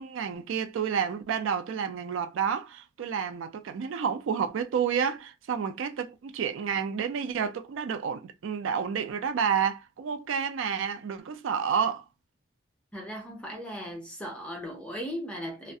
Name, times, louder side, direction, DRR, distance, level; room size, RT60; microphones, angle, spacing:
voice 1, 0.0-12.1, right 7 dB, 80° right, 0.3 m, -30 dB
voice 2, 12.9-15.7, equal, 5° left, 0.5 m, -37 dB
2.3 x 2.1 x 2.6 m
head